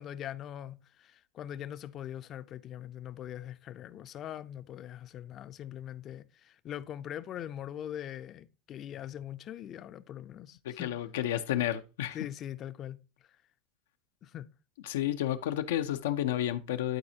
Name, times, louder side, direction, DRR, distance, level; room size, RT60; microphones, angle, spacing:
voice 1, 0.0-10.9 12.1-13.0 14.2-14.5, left 11 dB, 35° left, 0.4 m, -42 dB
voice 2, 10.6-12.2 14.8-17.0, left 12 dB, 90° left, 0.5 m, -31 dB
11.5 x 4.1 x 2.7 m
supercardioid pair, 130°, 0 cm